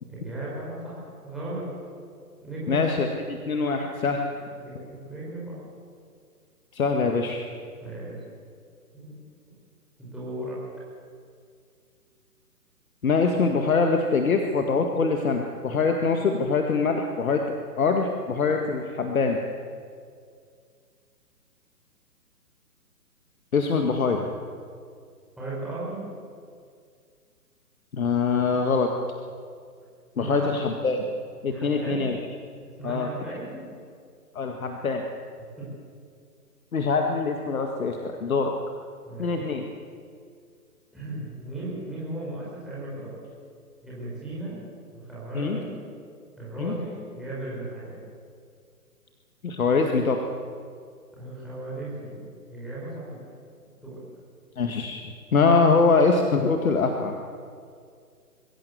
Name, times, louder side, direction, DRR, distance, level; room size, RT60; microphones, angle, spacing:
voice 1, 0.1-1.6 2.4-2.8 4.6-5.6 7.8-8.2 8.9-9.3 10.0-10.6 25.4-26.1 30.2-30.5 31.4-32.1 32.6-33.7 35.6-35.7 39.1-39.4 40.9-43.1 43.8-44.6 44.9-45.7 46.4-48.0 51.1-52.2 52.5-53.2 53.8-54.0, right 2 dB, ahead, -8 dB, 4.9 m, -36 dB
voice 2, 2.7-4.2 6.7-7.5 13.0-17.4 17.8-19.4 23.5-24.2 27.9-28.9 30.2-31.1 31.4-32.2 32.8-33.4 34.3-35.0 36.7-38.5 39.2-39.7 45.3-45.6 46.6-46.8 49.4-50.2 54.6-57.2, left 4 dB, 60° left, 4 dB, 1.9 m, -24 dB
23.0 x 15.5 x 8.1 m, 2.2 s
figure-of-eight pair, 135°, 48 cm